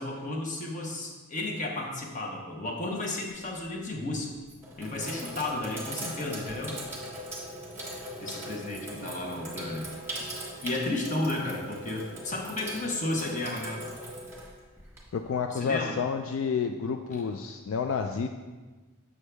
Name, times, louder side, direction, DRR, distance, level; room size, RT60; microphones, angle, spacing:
voice 1, 0.0-4.3 4.8-6.8 8.2-9.9 10.6-13.8 15.5-16.0, left 2 dB, 35° left, 1 dB, 1.0 m, -33 dB
Sink (filling or washing), 3.3-3.7 4.4-15.3, equal, 10° right, 1.3 m, -40 dB
voice 2, 15.1-18.3, left 6 dB, 65° left, 6 dB, 0.3 m, -30 dB
7.1 x 6.3 x 3.3 m, 1.3 s
head